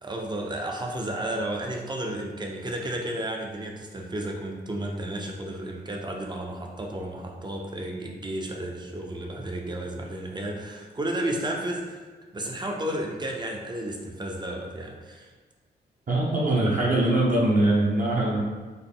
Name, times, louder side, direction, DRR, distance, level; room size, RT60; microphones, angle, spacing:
voice 1, 0.0-12.0 12.3-15.3, right 1 dB, 25° right, 0 dB, 0.6 m, -32 dB
voice 2, 16.1-18.4, right 2 dB, 45° right, -4 dB, 0.9 m, -22 dB
4.0 x 2.1 x 3.6 m, 1.4 s
cardioid pair, 85°, 18 cm